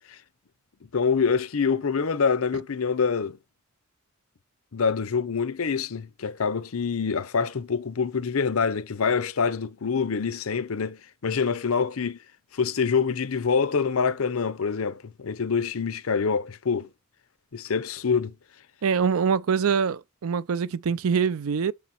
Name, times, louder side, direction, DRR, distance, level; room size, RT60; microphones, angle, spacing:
voice 1, 0.9-3.4 4.7-12.2 12.5-16.9 17.5-18.3, left 5 dB, 85° left, 0.7 m, -26 dB
voice 2, 18.8-21.7, right 6 dB, 85° right, 0.5 m, -24 dB
6.9 x 4.0 x 4.3 m
head